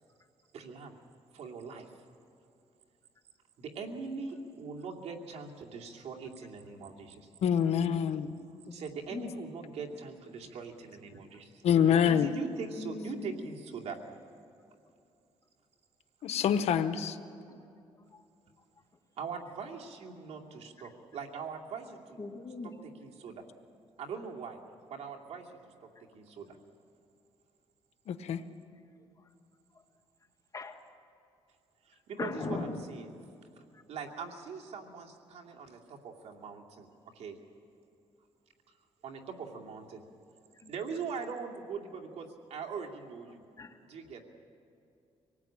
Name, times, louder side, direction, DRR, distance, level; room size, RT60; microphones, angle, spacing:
voice 1, 0.5-0.9 1.3-1.9 3.6-7.3 8.7-11.5 11.8-14.0 19.2-22.2 23.0-23.4 24.0-24.6 24.9-25.5 26.1-26.6 31.8-33.1 33.9-36.9 37.1-37.4 39.0-40.0 40.7-43.4 43.9-44.2, right 5 dB, 70° right, 1 dB, 2.7 m, -41 dB
voice 2, 7.4-8.3 11.6-12.3 16.2-17.2 28.1-28.4, left 8 dB, 75° left, 11 dB, 1.1 m, -26 dB
voice 3, 12.8-13.5 17.5-17.6 18.1-18.2 18.6-18.7 19.4-19.5 20.8-20.9 22.2-22.8 26.0-26.1 29.2-29.3 29.7-29.8 30.5-30.9 32.2-33.2 33.7-33.8 40.5-40.7 43.6-43.8, left 3 dB, 30° left, 4 dB, 1.9 m, -40 dB
25.5 x 19.0 x 8.8 m, 2.6 s
cardioid pair, 105°, 11 cm